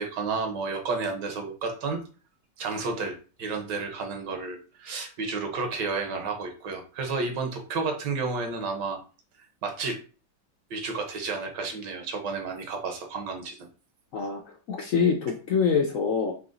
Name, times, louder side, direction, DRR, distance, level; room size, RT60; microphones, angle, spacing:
voice 1, 0.0-2.0 2.6-9.0 9.6-10.0 10.7-13.6, right 4 dB, 75° right, 4 dB, 1.5 m, -31 dB
voice 2, 14.7-16.3, left 6 dB, 65° left, 1 dB, 0.8 m, -25 dB
3.9 x 2.9 x 3.8 m, 0.36 s
omnidirectional pair, 1.9 m